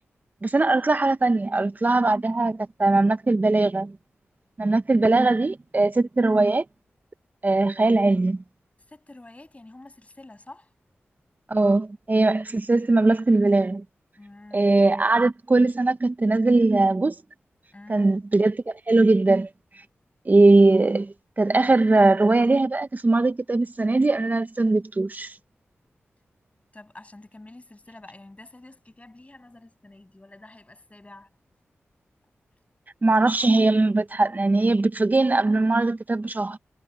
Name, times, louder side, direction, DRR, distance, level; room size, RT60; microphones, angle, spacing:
voice 1, 0.4-3.9 4.6-6.6 7.4-8.4 11.5-13.8 14.5-17.1 17.9-19.5 20.3-25.4 33.0-36.6, right 2 dB, 40° right, 1.1 m, -20 dB
voice 2, 8.9-10.7 14.2-14.7 17.7-18.1 26.7-31.3, left 2 dB, 30° left, 7.1 m, -47 dB
cardioid pair, 40°, 5 cm